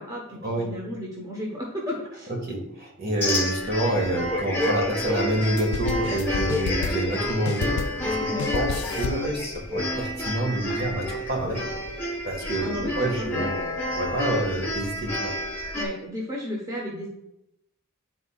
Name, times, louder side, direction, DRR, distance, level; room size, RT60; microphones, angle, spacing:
voice 1, 0.0-2.3 8.3-8.5 12.6-13.5 14.3-14.4 15.7-17.1, left 1 dB, 15° right, -3 dB, 1.0 m, -33 dB
voice 2, 2.3-11.6 12.2-13.6 13.9-15.3, right 1 dB, 45° right, 0 dB, 1.6 m, -28 dB
sound 1, 3.2-15.9, left 1 dB, 10° left, 1.0 m, -29 dB
sound 2, 5.3-7.2 7.4-8.1 8.4-9.3, left 5 dB, 85° left, 0.3 m, -31 dB
10.5 x 4.3 x 2.4 m, 0.81 s
head